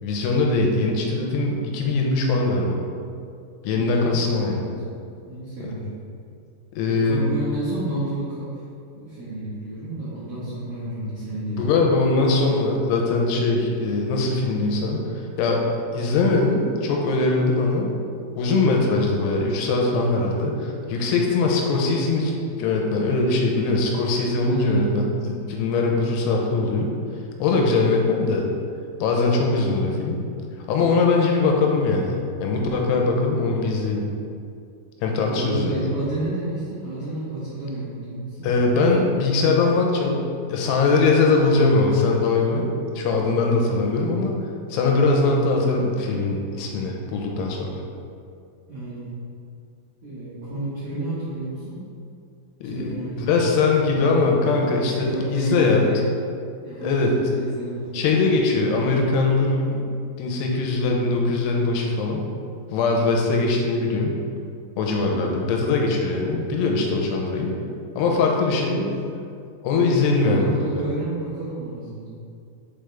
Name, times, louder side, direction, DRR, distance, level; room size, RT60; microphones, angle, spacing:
voice 1, 0.0-2.8 3.6-4.7 5.6-5.7 6.7-7.3 11.6-15.6 15.9-17.9 18.3-26.9 27.4-28.4 29.0-30.2 30.7-32.1 32.4-34.0 35.0-35.8 38.4-42.7 43.0-44.4 44.7-47.8 52.6-55.8 56.8-57.2 57.9-59.8 60.2-62.2 62.7-64.1 64.8-67.6 68.0-68.8 69.6-70.8, left 3 dB, 90° left, 0 dB, 2.8 m, -21 dB
voice 2, 3.7-4.7 5.0-5.9 6.9-8.5 8.9-11.8 24.4-25.3 35.3-38.5 48.7-49.1 50.0-51.8 52.7-53.3 54.4-54.5 54.9-56.1 56.6-57.9 65.1-65.5 68.6-69.0 70.2-72.1, right 2 dB, 80° right, -11 dB, 1.3 m, -30 dB
5.8 x 5.0 x 3.4 m, 2.4 s
omnidirectional pair, 4.7 m